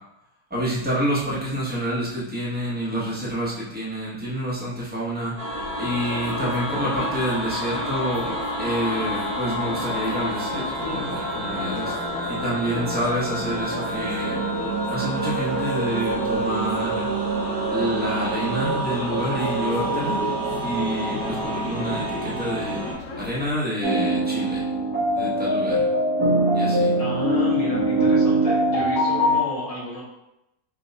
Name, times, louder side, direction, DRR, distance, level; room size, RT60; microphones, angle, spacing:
voice 1, 0.5-5.5 5.8-11.9 12.3-14.4 14.9-17.1 17.7-20.2 20.6-22.8 23.1-24.6 25.1-25.8 26.5-26.9, equal, 10° right, -7 dB, 0.5 m, -28 dB
sound 1, 5.4-22.9, right 2 dB, 65° right, 1.7 m, -28 dB
sound 2, 5.5-23.5, left 2 dB, 60° left, 0.9 m, -38 dB
sound 3, 23.8-29.4, right 1 dB, 80° right, 2.2 m, -21 dB
voice 2, 27.0-30.0, left 1 dB, 30° left, -5 dB, 0.7 m, -32 dB
4.4 x 2.1 x 3.9 m, 0.89 s
omnidirectional pair, 1.9 m